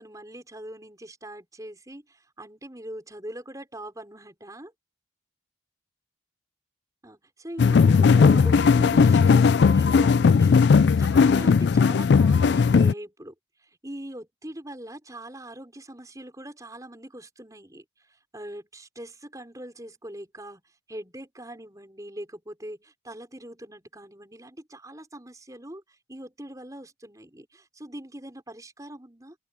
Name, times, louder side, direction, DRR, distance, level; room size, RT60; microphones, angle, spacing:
voice 1, 0.0-4.7 7.0-13.3 13.6-17.8 18.3-20.6 20.9-29.4, right 1 dB, 15° right, 5.4 m, -41 dB
sound 1, 7.6-12.9, left 5 dB, 60° left, 0.3 m, -17 dB
open air
head